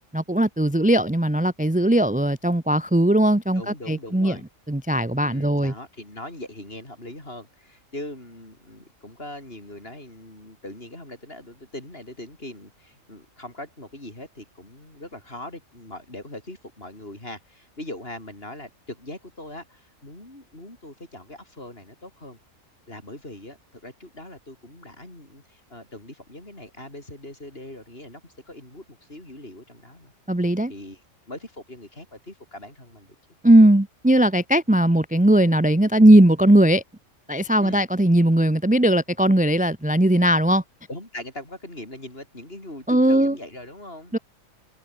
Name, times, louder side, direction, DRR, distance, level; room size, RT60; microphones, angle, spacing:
voice 1, 0.1-4.4 4.7-5.7 30.3-30.7 33.4-36.8 37.3-40.6 42.9-43.3 44.1-44.2, right 1 dB, 5° right, 1.0 m, -18 dB
voice 2, 3.5-4.5 5.2-22.4 22.9-30.1 30.7-33.2 37.6-37.8 40.9-44.2, left 1 dB, 45° left, 7.1 m, -41 dB
omnidirectional pair, 1.4 m